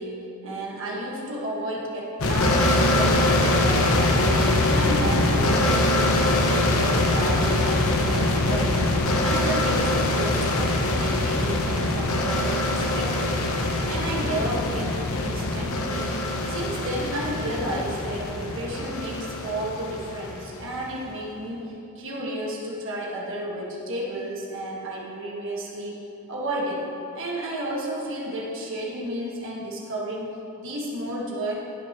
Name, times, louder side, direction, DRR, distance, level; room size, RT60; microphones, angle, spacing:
voice 1, 0.0-13.4 13.8-26.9 27.1-31.5, right 1 dB, 65° right, -4 dB, 1.6 m, -32 dB
sound 1, 2.2-20.8, left 1 dB, 75° left, 1.0 m, -23 dB
18.5 x 6.2 x 3.0 m, 2.8 s
head